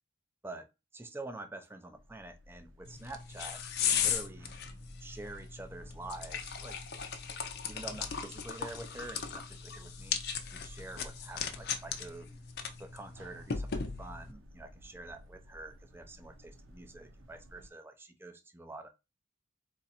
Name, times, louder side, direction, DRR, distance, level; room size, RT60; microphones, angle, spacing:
voice 1, 0.9-4.5 5.0-6.8 7.7-10.2 10.5-12.3 12.8-18.9, right 2 dB, 10° right, 0.5 m, -47 dB
sound 1, 1.9-17.7, equal, 75° right, 0.7 m, -54 dB
sound 2, 2.9-14.3, left 7 dB, 50° left, 0.6 m, -37 dB
4.1 x 2.5 x 4.2 m
head